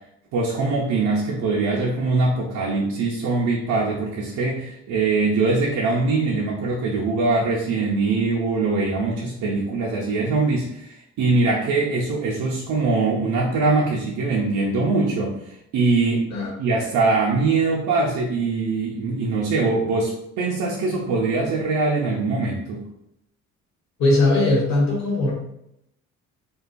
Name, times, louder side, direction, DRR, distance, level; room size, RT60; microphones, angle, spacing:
voice 1, 0.3-16.2 16.6-22.9, right 3 dB, 80° right, -4 dB, 0.5 m, -22 dB
voice 2, 24.0-25.3, left 2 dB, 65° left, -4 dB, 1.2 m, -19 dB
2.8 x 2.2 x 2.5 m, 0.80 s
cardioid pair, 90°, 30 cm